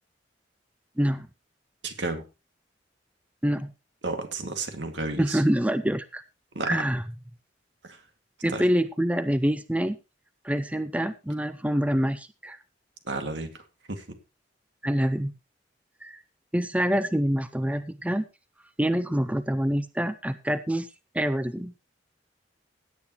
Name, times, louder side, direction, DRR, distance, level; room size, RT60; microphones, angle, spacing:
voice 1, 1.0-1.3 3.4-3.7 5.2-6.2 6.7-7.0 8.4-10.0 10.4-12.6 14.8-15.3 16.0-16.2 16.5-18.3 18.8-20.9 21.1-21.7, equal, 10° right, 12 dB, 0.5 m, -26 dB
voice 2, 1.8-2.2 4.0-5.4 6.5-6.8 7.8-8.0 8.5-8.6 13.0-14.0, right 3 dB, 75° right, 5 dB, 2.3 m, -32 dB
17.0 x 8.9 x 3.0 m, 0.28 s
head